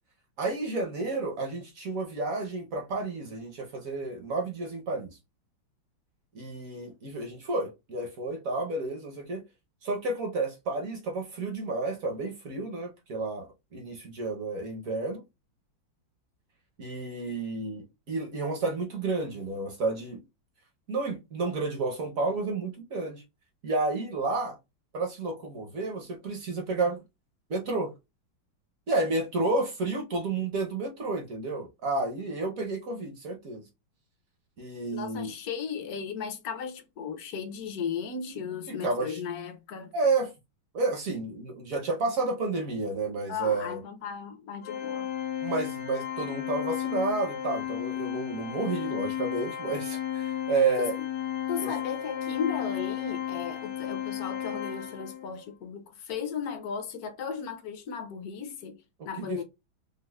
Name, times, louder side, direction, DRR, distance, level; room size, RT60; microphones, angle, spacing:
voice 1, 0.4-5.2 6.3-9.4 9.8-13.5 13.7-15.2 16.8-20.2 20.9-23.2 23.6-24.6 24.9-27.0 27.5-27.9 28.9-33.6 34.6-35.3 38.8-39.2 39.9-40.3 40.7-43.8 45.4-50.9 51.6-51.7 59.0-59.4, right 3 dB, 60° right, 0.9 m, -31 dB
voice 2, 34.9-39.9 43.3-45.1 50.5-51.1 51.5-59.4, left 6 dB, 65° left, 0.9 m, -36 dB
Organ, 44.6-55.4, left 10 dB, 85° left, 1.9 m, -34 dB
5.3 x 2.0 x 2.2 m
omnidirectional pair, 2.2 m